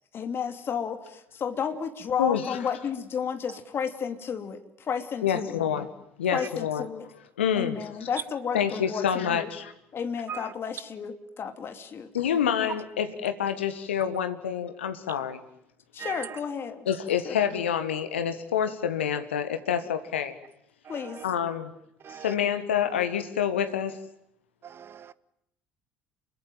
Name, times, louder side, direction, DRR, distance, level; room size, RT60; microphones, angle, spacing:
voice 1, 0.1-5.6 6.3-7.1 7.5-9.5 9.9-12.1 15.9-16.9 17.2-17.4 20.9-21.2, left 7 dB, 40° left, 2.8 m, -32 dB
voice 2, 2.2-2.6 5.2-5.9 6.2-6.9 7.4-7.8 8.5-9.7 12.1-15.4 16.8-20.3 21.2-21.7 22.2-24.0, left 8 dB, 75° left, 1.7 m, -27 dB
voice 3, 16.0-16.4 20.9-21.2 22.0-22.3 24.6-25.1, right 8 dB, 35° right, 1.1 m, -40 dB
28.5 x 23.0 x 9.1 m
figure-of-eight pair, 55°, 6 cm